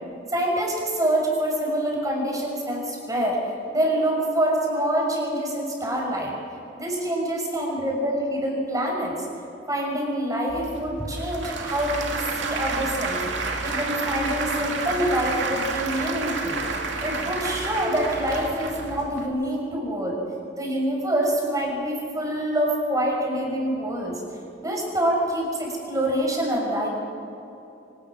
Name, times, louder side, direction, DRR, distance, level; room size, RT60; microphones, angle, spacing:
voice 1, 0.3-3.4 3.7-6.3 6.8-9.1 9.7-13.2 13.6-16.6 17.0-20.2 20.6-24.2 24.6-26.9, right 1 dB, 20° right, -1 dB, 6.1 m, -26 dB
Applause / Crowd, 10.5-19.3, right 3 dB, 90° right, 2.3 m, -30 dB
25.0 x 19.0 x 6.3 m, 3.0 s
head